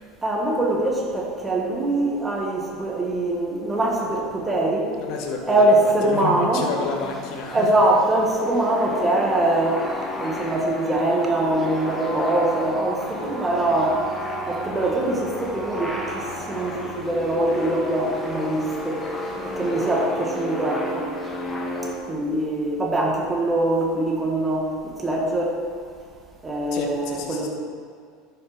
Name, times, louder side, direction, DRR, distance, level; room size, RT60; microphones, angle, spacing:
voice 1, 0.2-4.9 5.5-6.7 7.5-9.8 10.2-14.0 14.5-19.0 19.6-21.1 22.1-25.5 26.4-27.5, right 1 dB, 15° right, 0 dB, 1.7 m, -23 dB
voice 2, 4.9-7.7 26.7-27.5, left 5 dB, 55° left, 2 dB, 1.3 m, -31 dB
sound 1, 6.9-21.9, left 1 dB, 10° left, 1.6 m, -32 dB
11.5 x 5.6 x 4.4 m, 2.1 s
figure-of-eight pair, 75°, 0 cm